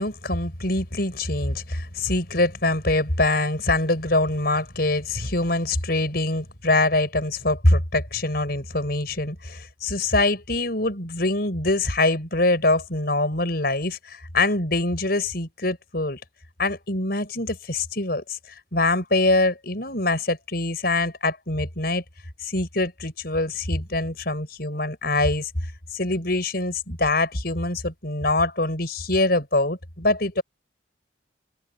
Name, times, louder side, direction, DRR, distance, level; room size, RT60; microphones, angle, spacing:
voice 1, 0.0-16.2 16.6-18.4 18.7-22.0 22.4-25.5 25.9-30.4, left 2 dB, 50° left, 6.2 m, -24 dB
open air
head